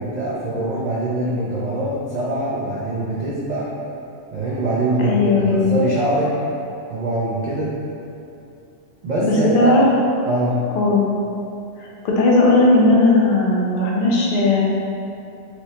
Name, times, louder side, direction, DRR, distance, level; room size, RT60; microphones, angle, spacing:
voice 1, 0.0-3.7 4.3-6.3 6.9-7.7 9.0-9.7 10.3-10.6, right 2 dB, 90° right, -7 dB, 0.3 m, -23 dB
voice 2, 5.0-5.7 9.2-9.9 10.8-11.0 11.8-14.6, left 2 dB, 55° left, -4 dB, 0.6 m, -16 dB
4.4 x 2.1 x 2.7 m, 2.7 s
omnidirectional pair, 1.3 m